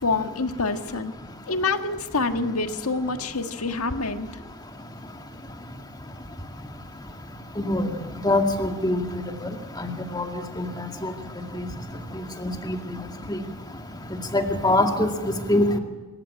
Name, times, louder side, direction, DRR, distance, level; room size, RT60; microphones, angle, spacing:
voice 1, 0.0-1.1 1.5-4.3, left 3 dB, 90° left, 7 dB, 1.6 m, -26 dB
voice 2, 7.6-7.9 8.2-9.0 9.8-10.3 10.6-11.1 12.4-12.7 13.3-13.4 14.3-15.1 15.5-15.8, left 1 dB, 20° left, 4 dB, 2.1 m, -23 dB
26.0 x 15.0 x 8.8 m, 1.3 s
head